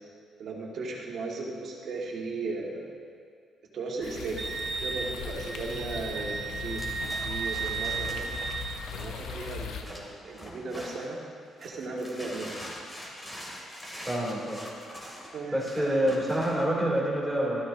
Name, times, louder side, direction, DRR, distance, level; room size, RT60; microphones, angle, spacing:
voice 1, 0.4-2.9 3.7-4.5 4.7-8.3 8.9-11.2 11.6-12.5 15.3-16.0, right 3 dB, 65° right, -2 dB, 2.1 m, -36 dB
sound 1, 4.0-9.8, left 5 dB, 85° left, 0.9 m, -39 dB
Wind instrument woodwind instrument, 4.4-8.8, right 5 dB, 45° right, 0.6 m, -34 dB
sound 2, 6.7-11.2 11.6-16.6, equal, 15° left, 3.0 m, -44 dB
voice 2, 14.1-14.7 15.5-17.7, right 1 dB, ahead, -4 dB, 3.2 m, -27 dB
13.5 x 13.0 x 2.9 m, 2.2 s
cardioid pair, 90°, 0 cm